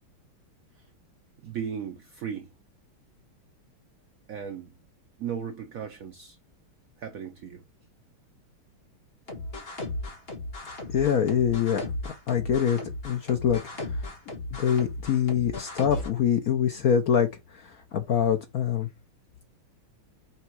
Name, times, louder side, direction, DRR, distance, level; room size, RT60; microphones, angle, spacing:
voice 1, 1.4-2.5 4.3-4.7 5.2-6.4 7.0-7.6, right 8 dB, 80° right, 0.7 m, -36 dB
sound 1, 9.3-16.1, left 2 dB, 30° left, 1.6 m, -36 dB
voice 2, 10.9-12.8 13.0-14.1 14.5-18.9, left 8 dB, 70° left, 0.8 m, -25 dB
6.3 x 3.6 x 4.5 m
omnidirectional pair, 2.4 m